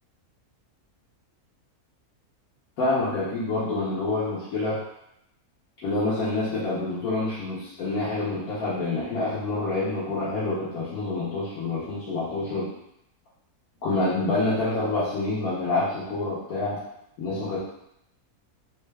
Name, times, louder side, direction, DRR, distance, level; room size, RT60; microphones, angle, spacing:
voice 1, 2.8-4.8 5.8-12.7 13.8-16.8 17.2-17.6, left 2 dB, 75° left, -10 dB, 1.5 m, -27 dB
3.7 x 3.5 x 3.4 m, 0.79 s
omnidirectional pair, 1.6 m